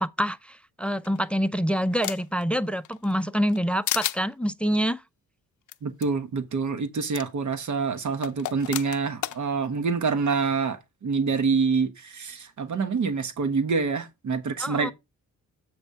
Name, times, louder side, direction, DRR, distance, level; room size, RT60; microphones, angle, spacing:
voice 1, 0.0-5.0 14.6-14.9, equal, 5° left, 0.5 m, -26 dB
sound 1, 1.0-2.4 2.9-3.6 3.9-4.2 5.7-5.8 6.0-6.1 7.1-7.3 8.2-9.4, left 12 dB, 60° left, 0.6 m, -32 dB
voice 2, 5.8-14.9, right 5 dB, 60° right, 1.3 m, -26 dB
7.9 x 3.4 x 5.7 m
cardioid pair, 85°, 34 cm